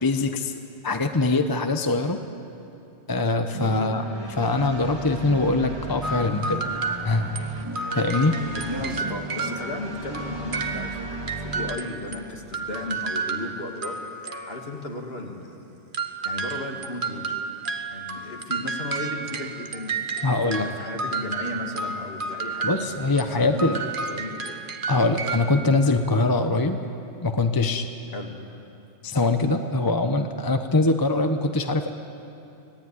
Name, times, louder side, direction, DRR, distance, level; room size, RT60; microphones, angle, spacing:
voice 1, 0.0-2.2 3.1-4.0 4.4-6.6 7.0-7.3 7.9-8.4 20.2-20.7 22.6-23.8 24.9-26.8 27.2-27.9 29.0-31.9, left 2 dB, 20° left, 7 dB, 0.9 m, -23 dB
sound 1, 3.5-11.8, right 1 dB, 20° right, 2.0 m, -36 dB
sound 2, 6.0-12.2 12.5-14.9 15.9-23.3 23.6-25.6, right 4 dB, 45° right, 1.4 m, -32 dB
voice 2, 8.4-14.0 14.5-15.5 16.2-17.4 17.9-23.0 23.3-23.7 24.1-24.6 28.1-28.4, left 2 dB, 60° left, 2 dB, 2.7 m, -35 dB
25.0 x 18.0 x 9.7 m, 2.8 s
omnidirectional pair, 1.2 m